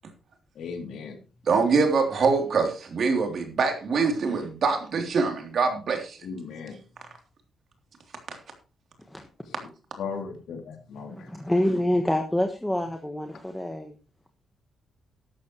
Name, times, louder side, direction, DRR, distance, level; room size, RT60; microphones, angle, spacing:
voice 1, 0.5-1.2 6.2-6.8 9.5-9.7 10.0-11.3, left 5 dB, 75° left, 5 dB, 3.0 m, -37 dB
voice 2, 1.5-6.2, right 4 dB, 50° right, 4 dB, 3.2 m, -24 dB
voice 3, 11.1-13.9, left 1 dB, 5° left, 4 dB, 1.3 m, -26 dB
13.5 x 12.0 x 3.1 m, 0.34 s
wide cardioid pair, 165°, 0 cm